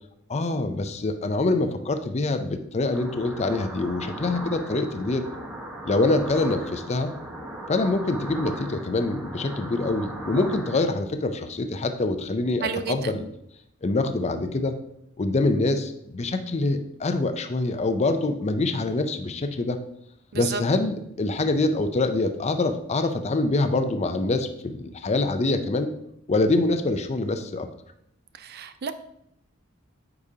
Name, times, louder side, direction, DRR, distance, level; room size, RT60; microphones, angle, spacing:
voice 1, 0.3-5.3 5.8-7.1 7.7-13.3 13.8-14.8 15.2-19.8 20.3-25.9 26.3-27.7, left 2 dB, 35° left, 9 dB, 0.5 m, -25 dB
sound 1, 2.9-10.8, right 1 dB, 5° right, 1.1 m, -38 dB
voice 2, 12.6-13.1 20.3-20.6 28.4-28.9, right 6 dB, 50° right, 11 dB, 0.4 m, -31 dB
8.5 x 4.9 x 2.8 m, 0.76 s
head